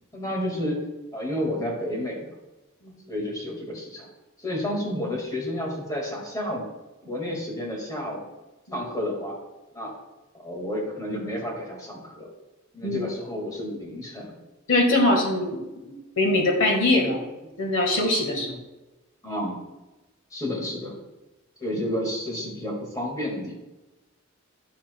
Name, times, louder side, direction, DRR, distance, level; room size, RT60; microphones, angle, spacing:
voice 1, 0.1-0.8 1.1-2.3 3.1-4.1 4.4-6.6 7.0-8.2 8.7-9.3 9.7-9.9 10.3-12.3 12.7-14.4 19.2-19.6 20.3-21.0 21.6-23.5, left 1 dB, 15° left, -1 dB, 1.9 m, -31 dB
voice 2, 14.7-15.6 16.2-17.2 17.6-18.5, left 2 dB, 65° left, 2 dB, 1.5 m, -22 dB
10.0 x 7.0 x 2.2 m, 1.1 s
head